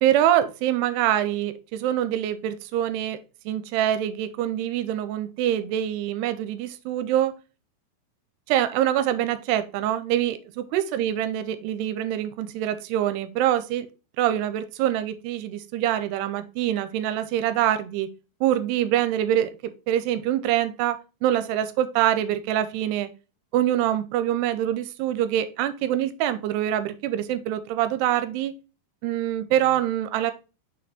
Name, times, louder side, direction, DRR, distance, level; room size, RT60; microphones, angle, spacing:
voice 1, 0.0-3.2 3.5-7.4 8.5-13.9 14.2-18.1 18.4-23.1 23.5-28.6 29.0-30.3, right 11 dB, 85° right, 12 dB, 2.6 m, -25 dB
6.3 x 4.3 x 4.1 m, 0.31 s
omnidirectional pair, 4.8 m